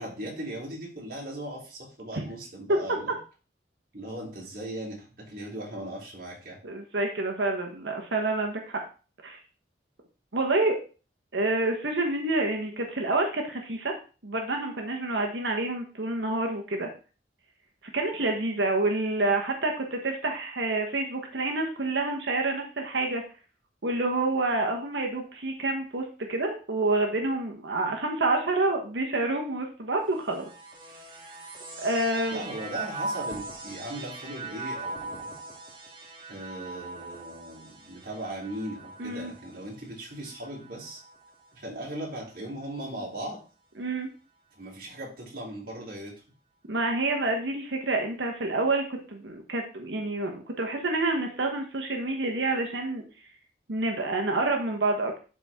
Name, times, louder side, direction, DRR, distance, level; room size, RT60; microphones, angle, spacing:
voice 1, 0.0-3.2 3.9-6.6 32.3-35.3 36.3-41.0 41.5-43.4 44.5-46.1, right 1 dB, 50° right, -3 dB, 3.4 m, -38 dB
voice 2, 6.6-8.8 9.2-9.4 10.3-10.7 11.3-13.9 14.2-16.9 17.9-23.2 23.8-30.4 31.8-32.4 39.0-39.3 43.8-44.1 46.7-53.0 53.7-55.2, right 2 dB, 75° right, 3 dB, 1.2 m, -28 dB
sound 1, 30.1-41.6 42.3-43.1, right 2 dB, 25° right, 1.6 m, -40 dB
12.0 x 4.3 x 3.6 m, 0.35 s
head